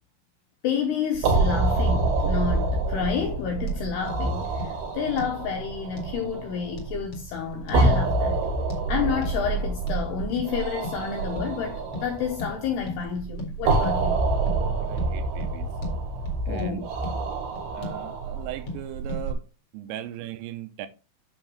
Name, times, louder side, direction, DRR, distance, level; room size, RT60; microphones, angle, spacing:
voice 1, 0.6-8.4 8.9-14.2 16.5-16.9, left 7 dB, 85° left, 2.4 m, -30 dB
sound 1, 1.1-19.3, right 3 dB, 70° right, 2.6 m, -27 dB
sound 2, 3.7-3.8 4.1-4.2 4.6-4.7 5.2-5.4 6.0-6.1 6.8-7.3 7.7-7.8 8.7-8.8 9.2-9.4 9.9-10.0 10.4-10.5 10.8-11.0 11.4-11.6 11.9-12.1 12.4-12.5 12.9-13.0 13.4-13.5 13.8-14.0 14.5-14.6 15.0-15.1 15.4-15.5 15.8-16.0 16.3-16.7 17.0-17.1 17.6-18.0 18.7-18.8 19.1-19.2, left 2 dB, 50° left, 1.9 m, -35 dB
voice 2, 14.8-15.7 16.5-16.8 17.7-19.4 19.7-20.9, right 11 dB, 85° right, 3.4 m, -37 dB
8.5 x 6.3 x 3.1 m
omnidirectional pair, 5.9 m